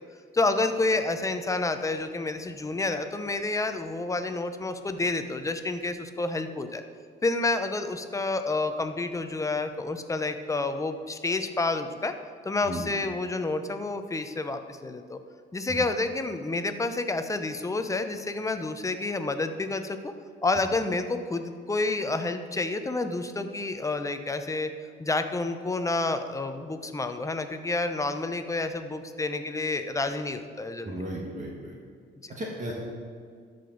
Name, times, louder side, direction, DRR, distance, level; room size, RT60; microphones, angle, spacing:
voice 1, 0.3-6.8 7.2-12.1 12.4-15.2 15.5-20.1 20.4-24.7 25.0-30.9 32.2-32.3, left 3 dB, 15° left, 8 dB, 0.6 m, -29 dB
voice 2, 30.8-31.7 32.3-32.7, right 1 dB, 40° right, -3 dB, 1.6 m, -35 dB
13.5 x 5.1 x 3.9 m, 2.1 s
cardioid pair, 90°, 20 cm